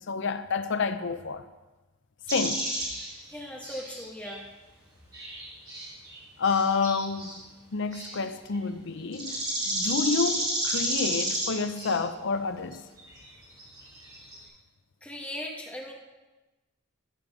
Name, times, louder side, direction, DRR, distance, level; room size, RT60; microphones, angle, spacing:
voice 1, 0.0-1.4 2.3-2.8 6.4-7.4 7.7-12.8, left 4 dB, 55° left, 0.6 m, -29 dB
sound 1, 2.3-4.4 5.1-6.2 6.4-7.4 7.9-8.2 8.5-8.6 9.1-12.0 12.7-12.8 13.0-13.3 13.6-14.4, right 1 dB, 20° right, 2.7 m, -32 dB
voice 2, 3.3-4.4 15.0-15.9, left 1 dB, 5° left, 1.4 m, -38 dB
14.5 x 5.1 x 5.9 m
head